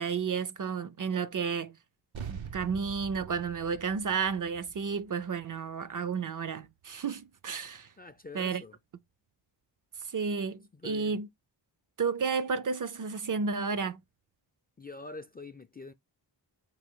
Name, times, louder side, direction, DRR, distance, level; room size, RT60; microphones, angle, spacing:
voice 1, 0.0-1.8 2.3-7.9 8.3-8.6 10.1-11.3 12.0-14.0, right 5 dB, 45° right, 0.5 m, -32 dB
sound 1, 2.1-6.9, right 8 dB, 85° right, 0.8 m, -45 dB
voice 2, 8.0-8.8 10.7-11.2 14.8-15.9, left 3 dB, 25° left, 0.3 m, -45 dB
5.0 x 2.6 x 3.6 m
wide cardioid pair, 65°, 45 cm